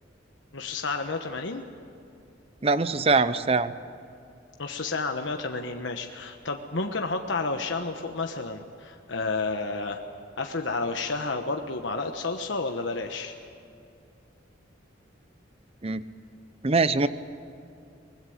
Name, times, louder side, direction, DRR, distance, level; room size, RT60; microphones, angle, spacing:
voice 1, 0.5-1.6 4.6-10.0 10.4-13.3, left 3 dB, 75° left, 4 dB, 1.2 m, -31 dB
voice 2, 2.6-3.7 15.8-16.0 16.6-17.1, right 3 dB, 30° right, 13 dB, 0.8 m, -23 dB
24.0 x 20.5 x 8.0 m, 2.5 s
head